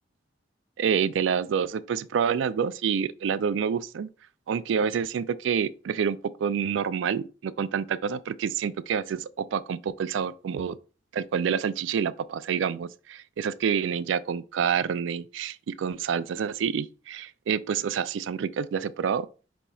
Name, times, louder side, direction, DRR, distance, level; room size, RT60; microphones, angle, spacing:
voice 1, 0.8-4.1 4.5-10.8 11.1-19.3, right 7 dB, 90° right, 0.3 m, -28 dB
5.2 x 2.3 x 4.2 m
head